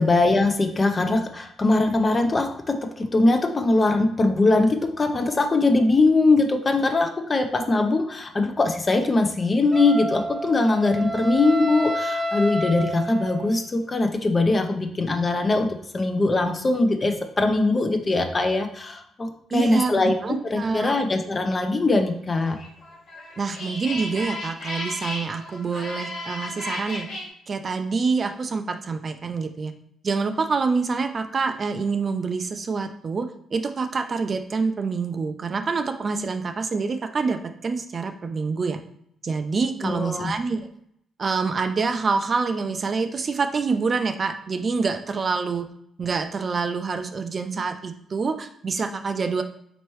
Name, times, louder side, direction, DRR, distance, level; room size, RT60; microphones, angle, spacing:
voice 1, 0.0-22.6 39.8-40.3, left 2 dB, 35° left, 5 dB, 0.6 m, -21 dB
Wind instrument woodwind instrument, 9.7-13.7, equal, 30° right, 0.7 m, -29 dB
voice 2, 19.5-20.9 23.4-27.1 27.5-29.7 30.0-38.8 39.2-40.6 41.2-45.7 46.0-49.4, right 4 dB, 45° right, 8 dB, 0.4 m, -26 dB
sound 1, 22.6-27.3, left 1 dB, 75° left, 1.2 m, -34 dB
4.3 x 3.1 x 3.0 m, 0.70 s
supercardioid pair, 65°, 0 cm